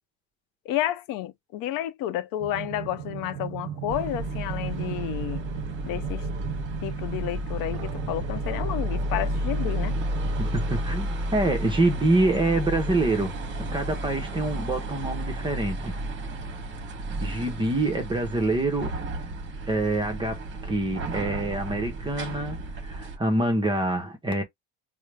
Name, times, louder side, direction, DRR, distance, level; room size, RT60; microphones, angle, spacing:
voice 1, 0.7-5.4 5.8-6.2 6.8-9.9, left 13 dB, 60° left, 0.6 m, -31 dB
sound 1, 2.4-10.8, right 11 dB, 70° right, 0.6 m, -36 dB
sound 2, 3.9-23.2, right 1 dB, 30° right, 1.0 m, -32 dB
voice 2, 10.4-13.3 13.7-15.9 17.2-18.9 19.7-22.6 22.8-24.4, right 2 dB, 15° right, 0.6 m, -26 dB
4.7 x 2.0 x 3.2 m
cardioid pair, 145°, 37 cm